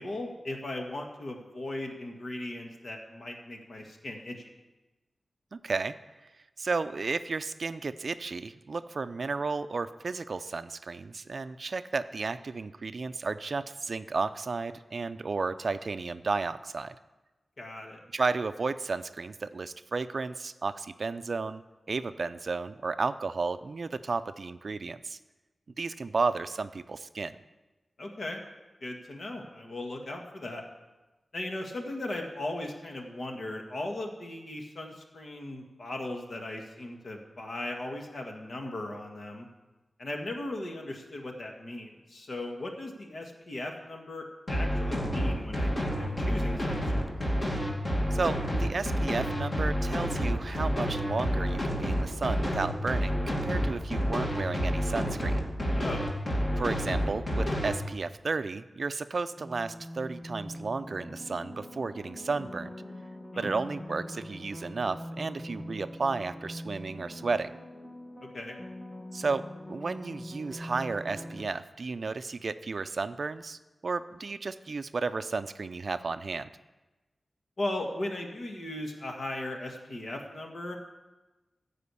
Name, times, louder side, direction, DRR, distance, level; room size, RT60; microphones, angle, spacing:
voice 1, 0.0-4.5 17.6-18.0 28.0-28.4 28.8-30.6 31.3-39.5 40.0-47.2 55.8-56.1 63.3-63.5 68.3-68.6 77.6-80.8, left 1 dB, 60° left, 2 dB, 1.8 m, -37 dB
voice 2, 5.5-5.9 6.6-17.0 18.1-21.6 21.9-25.2 25.8-27.3 48.1-55.4 56.6-62.7 63.4-67.5 69.1-76.5, right 4 dB, 55° right, 12 dB, 0.4 m, -33 dB
sound 1, 44.5-57.7, equal, 35° left, 2.4 m, -29 dB
sound 2, 59.4-71.4, left 1 dB, 10° left, 1.1 m, -43 dB
15.0 x 5.0 x 8.4 m, 1.1 s
wide cardioid pair, 120°, 0 cm